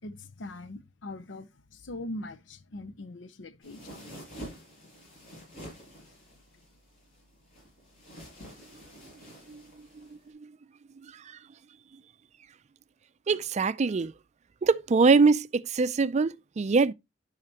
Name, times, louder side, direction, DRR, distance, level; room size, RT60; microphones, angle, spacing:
voice 1, 0.0-4.0 5.5-5.6, left 1 dB, 85° left, 0.7 m, -41 dB
sound 1, 3.6-10.3, equal, 50° left, 5.7 m, -48 dB
voice 2, 13.3-14.1 14.6-16.9, right 4 dB, 40° right, 0.4 m, -23 dB
10.5 x 5.7 x 2.9 m
head